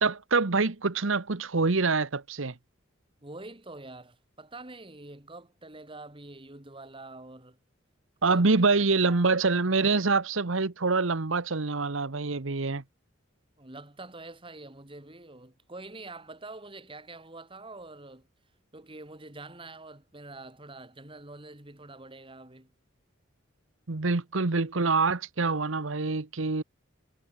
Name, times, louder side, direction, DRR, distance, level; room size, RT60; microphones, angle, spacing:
voice 1, 0.0-2.5 8.2-12.8 23.9-26.6, right 4 dB, 65° right, 1.1 m, -25 dB
voice 2, 3.2-7.6 8.3-8.4 9.0-9.3 13.6-18.3 18.7-22.7, right 2 dB, 25° right, 2.9 m, -46 dB
head